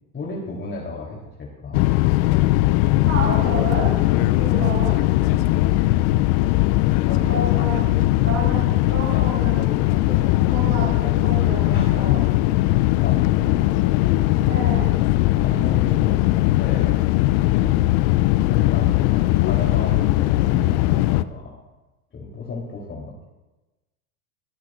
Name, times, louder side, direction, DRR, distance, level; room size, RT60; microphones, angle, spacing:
voice 1, 0.1-1.8 5.3-5.7 7.1-7.4 8.2-8.6 11.7-12.0 13.0-13.6 14.3-14.7 15.4-17.0 17.4-17.9 18.3-21.6 22.1-23.3, left 2 dB, 25° left, -3 dB, 3.7 m, -33 dB
sound 1, 1.7-21.2, left 17 dB, 50° left, 0.6 m, -19 dB
voice 2, 3.1-4.9 7.1-7.9 8.2-10.2 10.5-11.7 11.9-12.2 14.5-14.9, right 3 dB, 35° right, -4 dB, 4.7 m, -30 dB
24.5 x 11.5 x 2.6 m, 1.1 s
hypercardioid pair, 80°, 44 cm